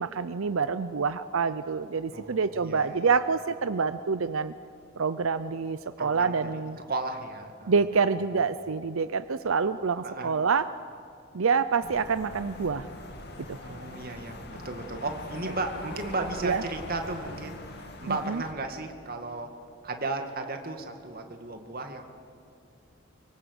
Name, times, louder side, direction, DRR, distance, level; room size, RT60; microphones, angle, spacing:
voice 1, 0.0-4.5 5.0-6.8 7.7-10.7 11.3-12.9 13.5-13.6 16.4-16.6 18.1-18.4, right 5 dB, 90° right, 13 dB, 0.6 m, -27 dB
voice 2, 2.1-3.0 6.0-6.5 6.9-7.7 10.0-10.3 13.6-17.6 18.0-19.5 19.8-22.0, right 2 dB, 50° right, 5 dB, 2.2 m, -35 dB
sound 1, 11.8-18.5, left 1 dB, 55° left, 2.5 m, -42 dB
24.0 x 24.0 x 8.2 m, 2.4 s
head